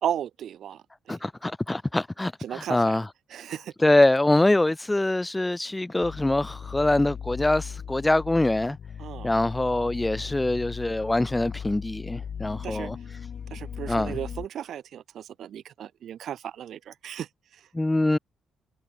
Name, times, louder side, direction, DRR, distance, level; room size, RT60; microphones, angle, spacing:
voice 1, 0.0-1.2 2.4-3.0 3.3-3.7 9.0-9.3 12.6-12.9 13.5-17.7, right 10 dB, 65° right, 2.8 m, -35 dB
voice 2, 1.1-3.1 3.8-8.8 9.2-13.0 13.9-14.2 17.7-18.2, left 2 dB, 10° left, 3.7 m, -24 dB
sound 1, 6.0-14.5, left 7 dB, 55° left, 7.6 m, -38 dB
cardioid pair, 90°, 0 cm